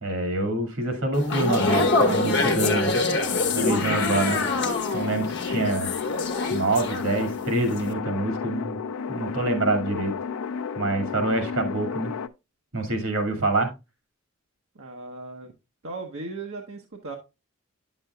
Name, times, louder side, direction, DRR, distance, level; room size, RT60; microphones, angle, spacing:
voice 1, 0.0-3.0 3.5-4.4 4.9-5.9 6.5-8.8 9.1-10.1 10.8-12.1 12.7-13.7, right 2 dB, 90° right, 6 dB, 2.1 m, -26 dB
sound 1, 1.1-7.4 7.7-7.9, left 3 dB, 55° left, 1.1 m, -25 dB
sound 2, 3.3-12.3, left 6 dB, 85° left, 0.4 m, -32 dB
voice 2, 14.7-15.5 15.8-17.2, right 3 dB, 65° right, 1 dB, 1.0 m, -37 dB
9.2 x 7.2 x 2.3 m, 0.25 s
head